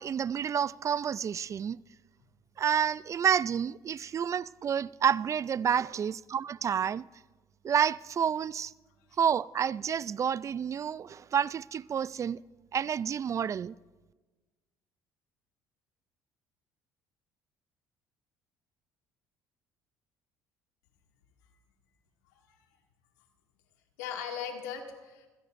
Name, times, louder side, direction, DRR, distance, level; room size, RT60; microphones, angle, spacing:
voice 1, 0.0-1.8 2.6-7.1 7.6-8.7 9.2-12.4 12.7-13.7, right 8 dB, 40° right, 0.4 m, -29 dB
voice 2, 24.0-25.3, left 7 dB, 90° left, 2.2 m, -40 dB
26.5 x 16.0 x 2.6 m
supercardioid pair, 75°, 8 cm